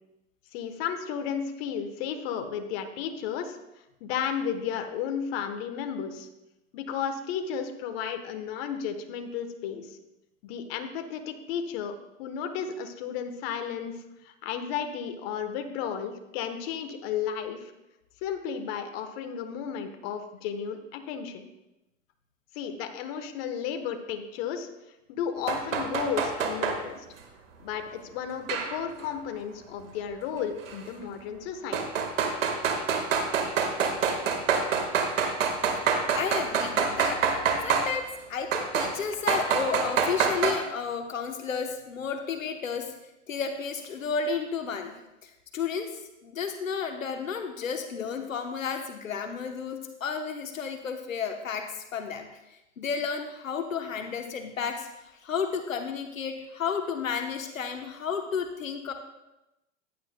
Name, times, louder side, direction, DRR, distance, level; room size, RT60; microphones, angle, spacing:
voice 1, 0.5-3.6 4.0-6.3 6.7-10.0 10.4-11.9 12.2-14.0 14.2-17.7 18.2-21.5 22.5-24.7 25.1-27.0 27.6-31.8, left 7 dB, 50° left, 7 dB, 1.2 m, -33 dB
sound 1, 25.5-26.8 28.5-29.1 30.7-30.8 31.7-37.9 38.5-38.9 39.3-40.5, right 6 dB, 75° right, 1.7 m, -26 dB
voice 2, 36.1-37.2 37.6-42.9 43.3-45.9 46.2-54.9 55.2-58.9, left 6 dB, 90° left, 6 dB, 1.0 m, -32 dB
15.0 x 9.6 x 2.2 m, 0.95 s
hypercardioid pair, 105°, 39 cm